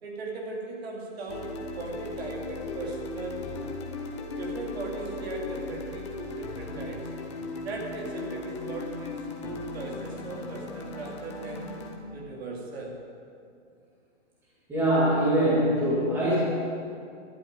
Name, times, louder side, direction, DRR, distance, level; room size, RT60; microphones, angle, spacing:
voice 1, 0.0-3.7 4.4-7.1 7.6-11.7 12.1-13.0, right 3 dB, 55° right, -1 dB, 2.8 m, -38 dB
sound 1, 1.3-12.0, left 3 dB, 25° left, 0.9 m, -37 dB
voice 2, 14.7-16.4, right 1 dB, 5° right, -9 dB, 2.2 m, -23 dB
12.5 x 7.4 x 9.0 m, 2.4 s
hypercardioid pair, 175°, 37 cm